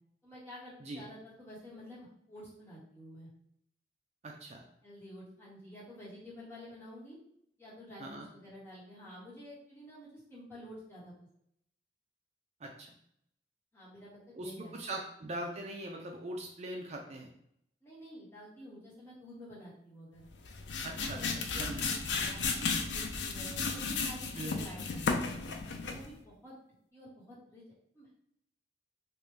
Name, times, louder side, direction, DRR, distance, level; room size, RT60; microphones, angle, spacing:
voice 1, 0.2-3.3 4.8-7.2 7.6-11.1 13.7-15.0 17.8-20.3 20.9-26.5 26.9-27.6 27.9-28.2, equal, 15° left, -8 dB, 1.3 m, -50 dB
voice 2, 4.2-4.6 8.0-8.3 12.6-12.9 14.3-17.3 20.8-21.9 24.3-24.7, right 1 dB, 40° right, 1 dB, 0.4 m, -41 dB
sound 1, 20.3-26.1, left 4 dB, 80° left, 0.5 m, -34 dB
3.2 x 2.5 x 3.3 m, 0.73 s
head